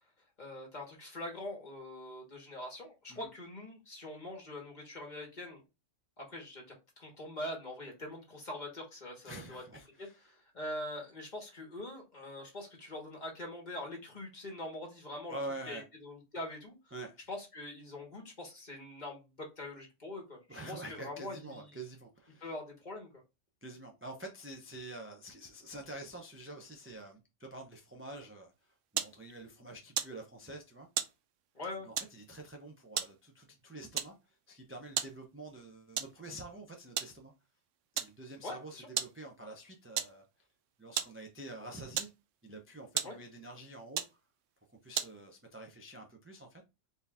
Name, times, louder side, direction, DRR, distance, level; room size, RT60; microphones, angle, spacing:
voice 1, 0.4-5.6 6.2-9.6 10.0-15.3 15.7-16.8 17.3-21.8 22.4-23.1 31.5-31.9 38.4-38.9 43.0-43.2, left 1 dB, 35° left, 1.6 m, -43 dB
voice 2, 9.2-10.2 15.3-15.8 16.9-17.2 20.5-22.5 23.6-30.9 31.8-37.3 37.9-40.2 40.8-42.1 42.4-44.0 44.7-46.6, right 1 dB, 20° right, 0.4 m, -47 dB
sound 1, 28.5-45.5, right 10 dB, 80° right, 0.9 m, -41 dB
4.4 x 2.6 x 3.5 m
omnidirectional pair, 1.3 m